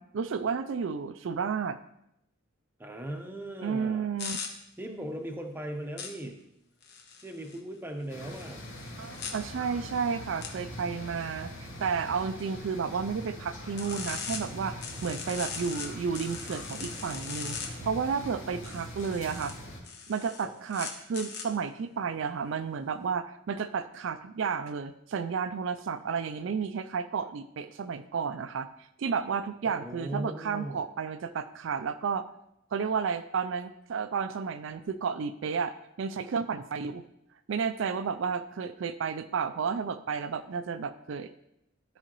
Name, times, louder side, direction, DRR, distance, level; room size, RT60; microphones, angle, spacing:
voice 1, 0.0-1.8 3.6-4.4 9.0-19.5 20.1-28.7 29.0-32.2 32.7-37.0 37.5-41.3, right 6 dB, 65° right, 11 dB, 0.4 m, -32 dB
voice 2, 2.8-4.1 4.8-6.4 7.2-8.7 20.4-20.5 29.6-30.8, right 1 dB, 10° right, 3 dB, 0.8 m, -38 dB
sound 1, 4.2-4.5 6.0-6.1 6.8-7.6 8.2-9.3 10.4-10.5 13.8-14.4 14.8-15.9 16.1-17.7 18.6-19.6 19.9-21.4, left 6 dB, 55° left, 1.1 m, -39 dB
sound 2, 8.1-19.8, left 1 dB, 75° left, 2.2 m, -42 dB
12.5 x 4.9 x 3.0 m, 0.79 s
head